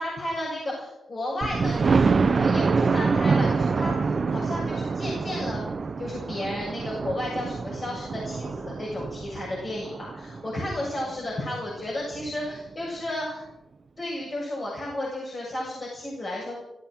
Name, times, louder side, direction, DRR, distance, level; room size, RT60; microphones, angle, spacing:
voice 1, 0.0-5.7 6.0-13.5 14.0-16.5, left 1 dB, 50° left, -4 dB, 7.5 m, -33 dB
Thunder, 1.4-11.1 11.7-11.8 12.2-12.3 12.6-12.7, right 4 dB, 55° right, 1.1 m, -26 dB
17.0 x 13.0 x 6.4 m, 0.94 s
supercardioid pair, 45°, 0 cm